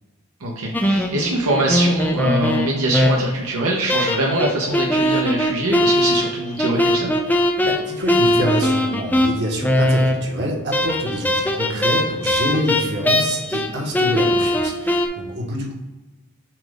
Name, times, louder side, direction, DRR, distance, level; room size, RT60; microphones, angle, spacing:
voice 1, 0.4-7.1, right 1 dB, 80° right, -2 dB, 1.0 m, -23 dB
sound 1, 0.7-3.4 3.9-10.4 10.7-13.7 13.9-15.1, left 1 dB, 10° left, 0.4 m, -20 dB
voice 2, 7.6-15.7, equal, 50° right, -2 dB, 1.4 m, -26 dB
7.3 x 2.5 x 5.1 m, 1.1 s
head